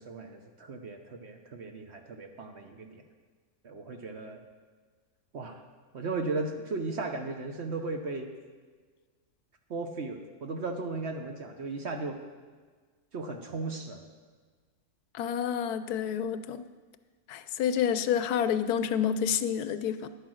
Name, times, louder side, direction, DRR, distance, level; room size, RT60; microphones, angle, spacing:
voice 1, 0.0-3.0 3.6-4.4 5.3-5.6 5.9-8.3 9.7-12.2 13.1-14.0, right 3 dB, 50° right, 5 dB, 1.0 m, -36 dB
voice 2, 15.1-16.6 17.3-20.1, left 8 dB, 80° left, 12 dB, 1.1 m, -29 dB
11.0 x 8.1 x 6.3 m, 1.5 s
omnidirectional pair, 1.6 m